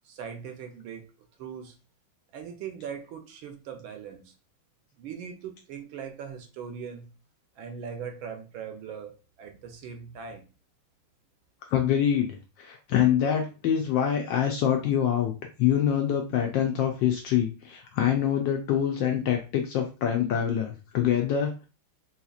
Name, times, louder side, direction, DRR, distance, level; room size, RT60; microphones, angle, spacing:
voice 1, 0.0-1.1 1.4-1.8 2.3-4.3 5.0-7.1 7.6-10.4, right 7 dB, 75° right, 1.4 m, -40 dB
voice 2, 11.7-15.3 15.6-21.7, left 9 dB, 75° left, 1.1 m, -25 dB
4.0 x 2.9 x 2.4 m
omnidirectional pair, 2.4 m